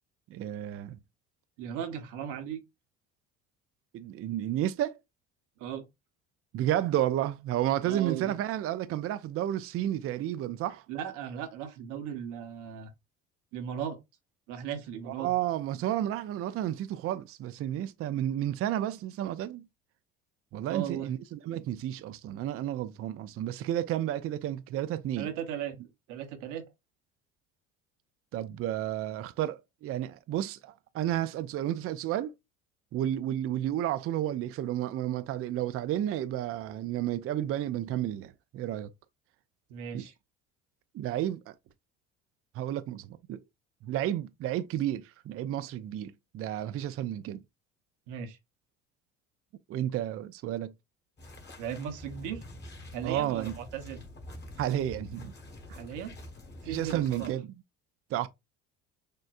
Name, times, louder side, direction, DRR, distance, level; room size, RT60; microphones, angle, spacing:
voice 1, 0.3-1.0 3.9-5.0 6.5-10.8 15.0-19.6 20.5-25.3 28.3-32.3 32.9-38.9 39.9-40.1 40.9-41.5 42.5-43.4 43.8-47.4 49.7-50.7 53.0-53.5 54.6-55.3 56.7-57.5 58.1-58.3, right 12 dB, 45° right, 0.5 m, -31 dB
voice 2, 1.6-2.6 5.6-5.9 7.9-8.3 10.9-12.9 13.5-14.0 14.5-15.3 20.7-21.1 25.2-25.8 26.1-26.7 39.7-40.1 48.1-48.4 51.6-52.4 52.9-54.0 55.7-56.1 56.6-57.3, right 9 dB, 70° right, 1.0 m, -37 dB
sound 1, 51.2-57.3, left 1 dB, 35° left, 1.6 m, -46 dB
6.5 x 2.2 x 2.5 m
hypercardioid pair, 70°, 32 cm